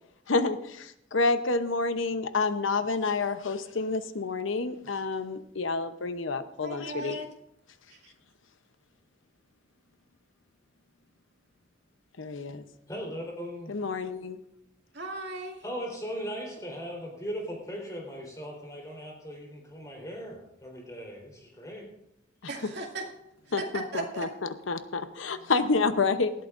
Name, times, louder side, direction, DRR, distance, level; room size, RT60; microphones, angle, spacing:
voice 1, 0.3-7.2 12.2-12.6 13.7-14.4 23.5-26.3, left 3 dB, 90° left, 10 dB, 0.8 m, -29 dB
voice 2, 6.6-7.3 7.9-8.1 14.9-15.6 22.5-23.1 23.6-24.3, right 2 dB, 60° right, 0 dB, 2.3 m, -37 dB
voice 3, 12.9-13.8 15.6-21.9, equal, 20° left, -1 dB, 3.9 m, -38 dB
18.5 x 12.5 x 2.6 m, 0.79 s
head